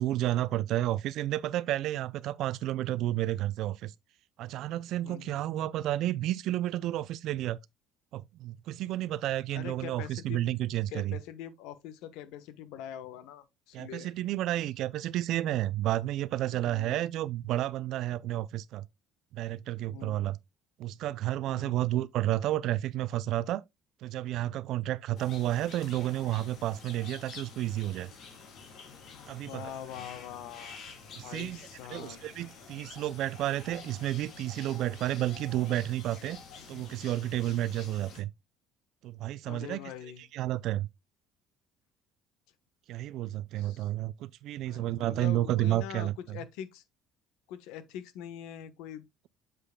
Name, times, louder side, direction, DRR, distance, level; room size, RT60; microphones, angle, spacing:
voice 1, 0.0-3.9 4.4-7.6 8.1-11.2 13.7-18.9 19.3-20.4 20.8-23.6 24.0-28.1 29.3-29.7 31.2-31.6 31.9-36.4 36.7-38.3 39.0-39.8 40.3-40.9 42.9-46.4, right 14 dB, 55° right, 0.4 m, -31 dB
voice 2, 5.0-5.4 9.2-10.4 10.9-14.1 16.6-17.1 19.9-20.3 21.5-21.8 29.5-30.9 31.2-32.2 39.5-40.2 43.6-43.9 44.6-46.8 47.5-49.3, left 10 dB, 80° left, 1.2 m, -43 dB
sound 1, 25.2-38.2, left 5 dB, 50° left, 3.3 m, -49 dB
8.3 x 7.5 x 2.3 m
cardioid pair, 160°, 0 cm